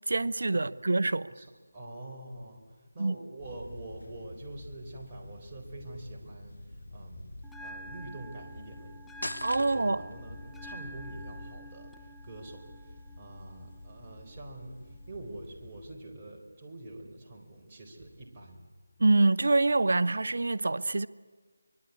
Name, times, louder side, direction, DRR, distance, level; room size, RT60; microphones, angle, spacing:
voice 1, 0.1-1.3 3.0-3.1 9.4-10.0 19.0-21.1, right 2 dB, 60° right, 0.8 m, -25 dB
voice 2, 1.7-7.3 7.6-8.9 9.2-18.7, right 2 dB, 25° right, 4.3 m, -46 dB
sound 1, 3.4-16.0, left 1 dB, 65° left, 5.7 m, -48 dB
Bell, 7.4-15.4, right 1 dB, ahead, 0.7 m, -50 dB
sound 2, 9.2-10.2, left 1 dB, 90° left, 1.4 m, -38 dB
24.5 x 21.5 x 8.5 m
figure-of-eight pair, 160°, 0 cm